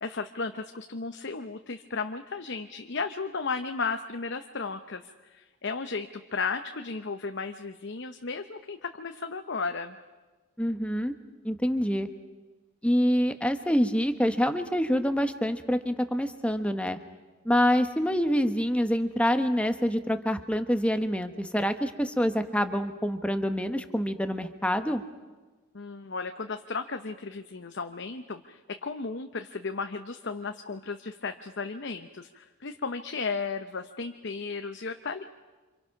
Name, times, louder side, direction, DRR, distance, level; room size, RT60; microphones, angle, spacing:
voice 1, 0.0-10.0 25.7-35.2, left 4 dB, 50° left, 7 dB, 0.8 m, -34 dB
voice 2, 10.6-11.1 11.4-12.1 12.8-17.0 17.4-25.0, equal, 5° left, 8 dB, 1.1 m, -26 dB
28.5 x 27.0 x 5.9 m, 1.3 s
head